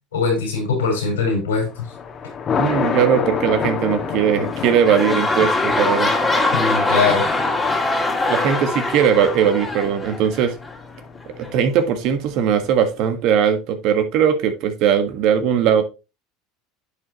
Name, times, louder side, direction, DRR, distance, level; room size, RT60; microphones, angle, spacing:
voice 1, 0.1-1.9 6.5-7.2, left 4 dB, 90° left, 2 dB, 4.5 m, -21 dB
Thunder, 1.6-13.0, left 6 dB, 40° left, 1.8 m, -29 dB
voice 2, 2.6-6.1 8.3-10.5 11.4-15.8, right 8 dB, 60° right, 7 dB, 1.6 m, -19 dB
sound 1, 4.4-10.8 11.4-11.5, left 2 dB, 15° left, 2.5 m, -22 dB
10.5 x 5.5 x 3.0 m, 0.29 s
hypercardioid pair, 85°, 0 cm